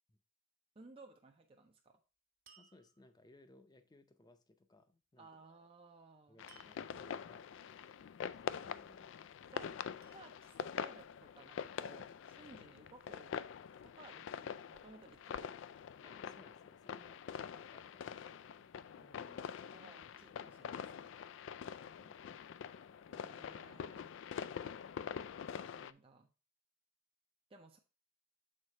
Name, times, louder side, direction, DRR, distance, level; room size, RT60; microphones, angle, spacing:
voice 1, 0.8-2.0 5.2-6.4 9.5-9.8 10.1-13.3 13.8-15.6 19.0-21.1 23.1-24.1 25.5-26.3 27.5-27.8, right 3 dB, 30° right, 3 dB, 0.5 m, -59 dB
sound 1, 2.5-3.4 6.5-7.1 8.4-9.0 10.0-10.8 11.8-12.6, right 7 dB, 50° right, 1.4 m, -67 dB
voice 2, 2.6-5.3 6.3-7.5 8.3-9.1 9.4-9.6 16.0-17.2 17.5-18.7 20.0-20.1 22.0-22.4, left 2 dB, 20° left, 9 dB, 0.6 m, -64 dB
sound 2, 6.4-25.9, left 7 dB, 75° left, 0.3 m, -45 dB
6.5 x 4.3 x 4.0 m, 0.33 s
head